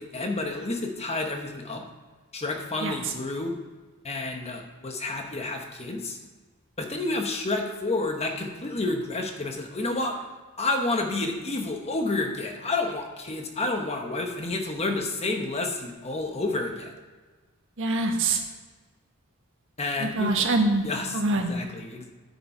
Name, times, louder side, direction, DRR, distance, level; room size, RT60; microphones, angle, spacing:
voice 1, 0.0-1.8 2.3-3.5 4.0-6.2 6.8-10.2 10.6-16.9 19.8-20.4 20.8-22.1, left 2 dB, 30° left, 4 dB, 1.1 m, -30 dB
voice 2, 17.8-18.4 20.0-20.8 21.1-21.5, right 2 dB, 60° right, 3 dB, 1.3 m, -24 dB
9.4 x 7.1 x 4.3 m, 1.3 s
head